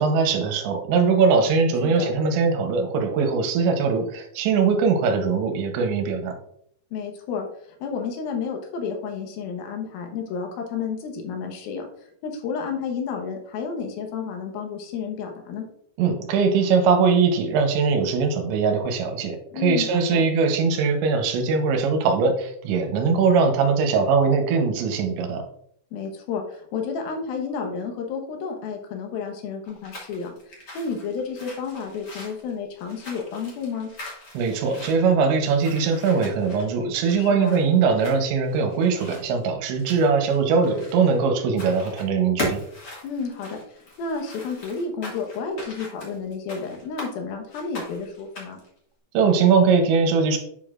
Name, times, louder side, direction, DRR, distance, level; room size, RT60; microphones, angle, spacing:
voice 1, 0.0-6.4 16.0-25.4 34.3-42.6 49.1-50.4, right 5 dB, 75° right, 5 dB, 3.0 m, -21 dB
voice 2, 6.9-7.5 7.8-11.9 12.2-15.6 19.5-20.2 25.9-33.9 37.2-37.6 43.0-48.6, left 5 dB, 75° left, 3 dB, 2.4 m, -31 dB
sound 1, 29.6-41.2 41.5-42.1 42.4-47.1 47.5-48.7, left 2 dB, 90° left, 0.9 m, -39 dB
7.8 x 6.9 x 2.4 m, 0.68 s
omnidirectional pair, 5.5 m